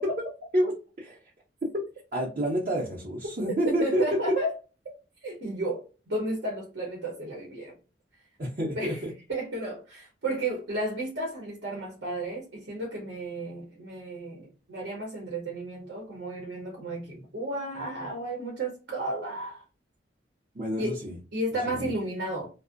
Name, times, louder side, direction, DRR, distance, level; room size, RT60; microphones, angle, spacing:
voice 1, 0.5-1.2 1.6-1.9 2.1-4.3 8.4-9.1 20.5-21.2 21.6-21.9, equal, 45° right, 0.6 m, -28 dB
voice 2, 3.7-4.5 5.2-7.7 8.7-9.0 9.3-19.6 20.8-20.9 21.3-22.5, right 1 dB, 80° right, 0.8 m, -33 dB
2.5 x 2.0 x 2.5 m
head